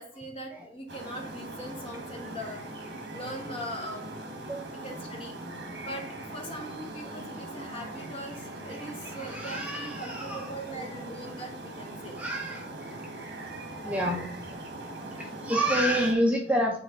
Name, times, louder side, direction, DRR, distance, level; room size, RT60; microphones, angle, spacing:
voice 1, 0.0-4.2 4.7-5.4 5.8-12.2 13.8-14.0 15.1-15.3, equal, 30° left, 1 dB, 1.4 m, -41 dB
sound 1, 0.9-16.1, right 2 dB, 60° right, 1.4 m, -41 dB
voice 2, 9.1-10.9 12.2-13.1 13.8-14.3 15.2-16.8, equal, 10° right, 0 dB, 0.6 m, -29 dB
8.5 x 3.4 x 3.8 m, 0.66 s
head